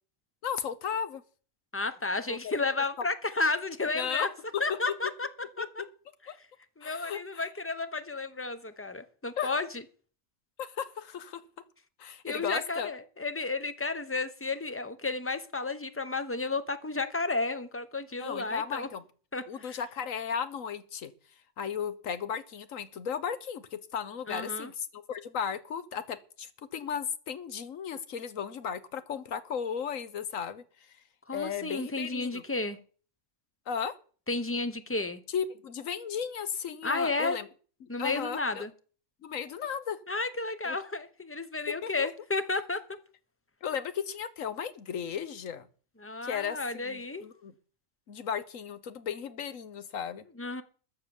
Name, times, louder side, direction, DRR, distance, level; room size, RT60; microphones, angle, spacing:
voice 1, 0.4-1.2 2.3-2.5 3.9-4.3 4.5-4.8 5.6-5.7 6.3-6.4 6.8-7.4 9.4-9.5 10.6-11.4 12.0-12.9 18.2-19.0 19.5-21.1 21.6-30.6 31.3-32.4 33.7-33.9 35.3-37.5 37.8-38.6 39.2-40.0 40.6-40.8 41.8-42.1 43.6-45.7 46.2-47.5 48.1-50.2, left 7 dB, 75° left, 1.5 m, -35 dB
voice 2, 1.7-4.3 4.6-5.8 6.8-9.8 12.2-18.9 19.3-19.8 24.3-24.7 31.3-32.8 34.3-35.2 36.8-37.4 37.9-38.7 40.1-42.8 46.0-47.2 50.4-50.6, left 3 dB, 10° left, 0.9 m, -32 dB
13.5 x 8.8 x 7.1 m
omnidirectional pair, 1.4 m